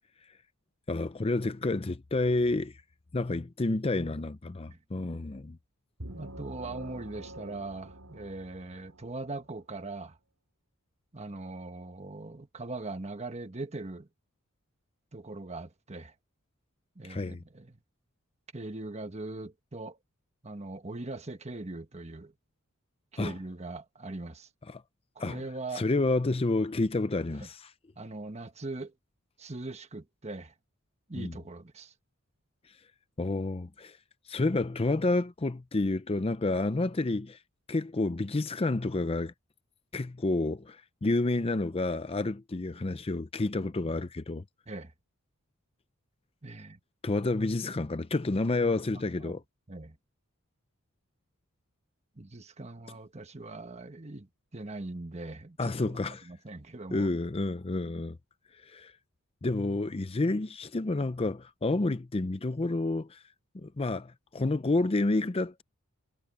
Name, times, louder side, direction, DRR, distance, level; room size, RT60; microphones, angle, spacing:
voice 1, 0.9-2.7 3.1-5.6 17.0-17.4 23.2-23.3 24.7-24.8 25.2-25.4 25.7-27.7 31.2-31.4 33.2-34.0 34.3-37.4 37.7-39.3 39.9-44.4 47.0-49.4 55.6-56.3 56.9-58.2 58.6-58.9 59.4-63.2 63.5-65.6, left 2 dB, 25° left, 0.5 m, -29 dB
sound 1, 6.0-9.5, right 1 dB, 80° right, 5.6 m, -46 dB
voice 2, 6.1-10.2 11.1-14.1 15.1-16.1 16.9-17.8 18.5-20.0 20.4-22.3 23.1-24.5 25.1-25.8 27.4-27.5 28.0-28.9 29.4-30.5 31.1-31.9 44.7-44.9 46.4-46.8 49.2-49.4 49.7-50.0 52.2-57.1, right 2 dB, 30° right, 1.2 m, -41 dB
head